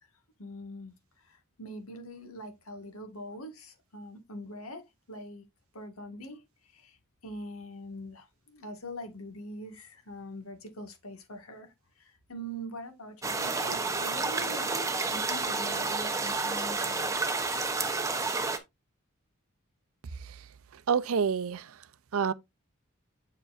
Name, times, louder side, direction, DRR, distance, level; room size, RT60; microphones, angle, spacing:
voice 1, 0.4-0.9 1.2-5.4 5.7-6.4 6.7-7.0 7.2-14.7 15.1-17.2, equal, 85° left, 1.8 m, -43 dB
sound 1, 13.2-18.6, right 3 dB, 15° right, 0.8 m, -30 dB
voice 2, 20.7-21.8 22.1-22.3, right 6 dB, 80° right, 0.5 m, -28 dB
7.2 x 6.8 x 2.5 m
head